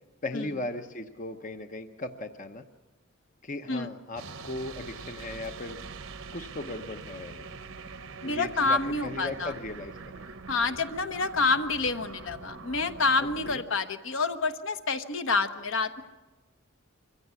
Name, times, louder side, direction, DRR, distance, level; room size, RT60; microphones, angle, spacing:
voice 1, 0.2-2.6 3.4-5.8 6.3-7.5 8.2-10.2 13.4-13.6, left 2 dB, 40° left, 7 dB, 0.8 m, -37 dB
sound 1, 4.2-13.6, right 4 dB, 70° right, 0.9 m, -44 dB
voice 2, 8.2-9.5 10.5-16.0, left 3 dB, 65° left, 8 dB, 1.1 m, -28 dB
24.0 x 15.5 x 8.2 m, 1.2 s
head